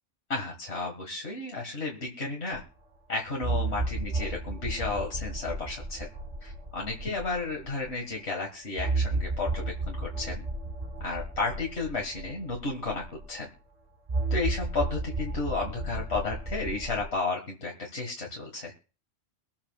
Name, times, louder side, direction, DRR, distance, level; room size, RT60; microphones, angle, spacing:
voice 1, 0.3-2.6 3.1-6.1 6.4-10.5 11.0-13.5 14.3-18.7, left 3 dB, 75° left, -1 dB, 2.1 m, -33 dB
sound 1, 2.5-2.6 3.4-7.9 8.8-13.4 14.1-17.1, right 2 dB, 40° right, 1.1 m, -33 dB
23.5 x 8.5 x 2.4 m, 0.36 s
omnidirectional pair, 1.1 m